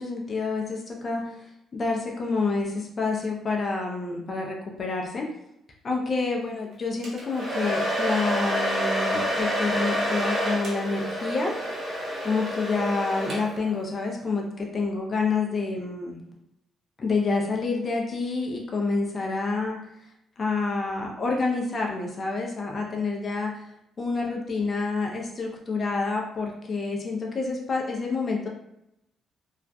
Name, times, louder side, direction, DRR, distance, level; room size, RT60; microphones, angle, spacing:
voice 1, 0.0-1.4 1.7-5.3 5.8-11.5 12.2-16.2 17.0-19.8 20.4-23.7 24.0-28.5, left 3 dB, 40° left, 0 dB, 0.5 m, -28 dB
Domestic sounds home sounds, 7.0-13.7, equal, 50° right, 0.9 m, -28 dB
2.4 x 2.3 x 2.2 m, 0.82 s
cardioid pair, 90°, 0 cm